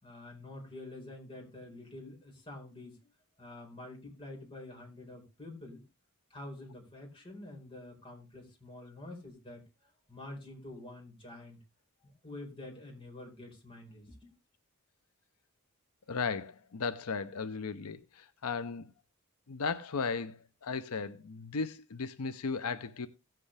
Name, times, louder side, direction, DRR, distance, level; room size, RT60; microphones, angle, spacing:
voice 1, 0.0-3.0 3.4-5.8 6.3-9.6 10.1-11.6 12.2-14.3, left 2 dB, 25° left, 4.4 m, -47 dB
voice 2, 16.1-18.9 19.5-23.1, left 5 dB, 85° left, 0.7 m, -36 dB
17.0 x 7.7 x 3.3 m
head